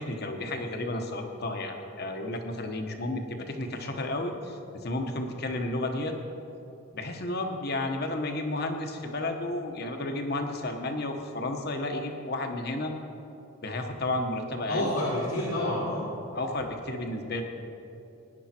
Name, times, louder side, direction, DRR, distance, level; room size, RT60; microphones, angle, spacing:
voice 1, 0.0-6.1 6.9-12.9 13.6-14.9 15.4-15.7 16.3-17.4, left 2 dB, 50° left, 4 dB, 1.2 m, -32 dB
voice 2, 14.7-16.1, left 1 dB, 80° left, -6 dB, 2.3 m, -28 dB
17.0 x 10.0 x 4.4 m, 2.8 s
head